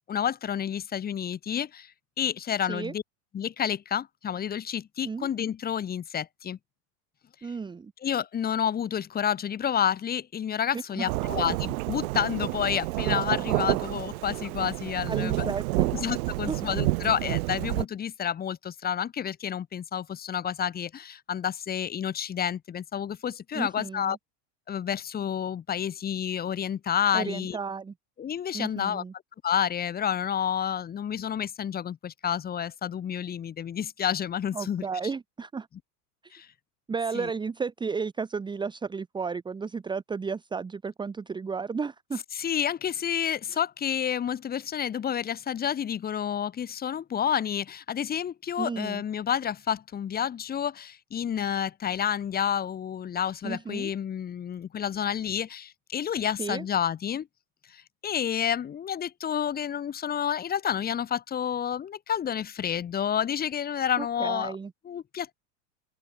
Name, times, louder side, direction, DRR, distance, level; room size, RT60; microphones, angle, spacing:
voice 1, 0.1-3.0 3.3-6.6 8.0-15.5 15.9-24.2 24.7-27.6 28.2-29.0 29.4-34.8 36.3-36.5 37.1-37.3 42.3-57.3 57.7-64.5 64.8-65.3, left 9 dB, 20° left, 6.3 m, -30 dB
voice 2, 7.4-7.9 10.7-11.1 15.1-15.9 16.5-16.6 23.5-24.2 27.1-27.9 28.5-29.1 34.5-35.7 36.2-36.3 36.9-42.2 43.5-43.6 48.6-49.0 53.4-53.9 56.4-56.6 64.0-64.7, right 5 dB, 10° right, 2.1 m, -33 dB
Thunderstorm / Rain, 11.1-17.9, right 22 dB, 65° right, 1.1 m, -29 dB
open air
supercardioid pair, 170°, 45 cm